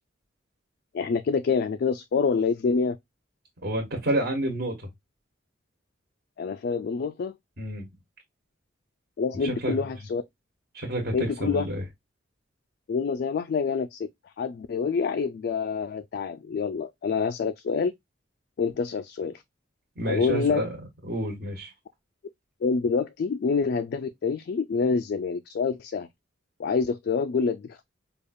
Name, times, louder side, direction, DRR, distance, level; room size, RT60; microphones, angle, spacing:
voice 1, 0.9-3.0 6.4-7.3 9.2-10.2 11.1-11.7 12.9-17.9 18.6-19.4 20.1-20.7 22.6-26.1 26.6-27.9, left 5 dB, 55° left, 0.3 m, -27 dB
voice 2, 3.6-4.9 7.6-7.9 9.4-9.8 10.7-11.8 20.0-20.7 21.1-21.7, right 1 dB, 55° right, 1.2 m, -29 dB
5.0 x 2.3 x 2.6 m
head